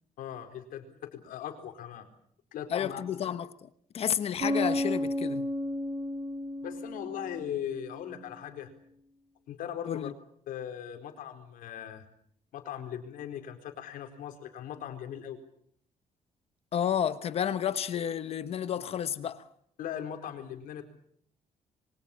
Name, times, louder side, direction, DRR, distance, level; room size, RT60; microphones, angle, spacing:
voice 1, 0.2-2.1 2.5-3.0 6.6-8.7 9.5-10.1 10.5-12.1 12.5-15.4 19.8-20.8, left 9 dB, 80° left, 4.3 m, -39 dB
voice 2, 2.7-3.7 3.9-5.5 9.9-10.1 16.7-19.5, left 9 dB, 45° left, 1.1 m, -31 dB
Bass guitar, 4.4-8.0, left 1 dB, 30° right, 4.6 m, -33 dB
27.5 x 23.5 x 7.3 m
cardioid pair, 180°, 14 cm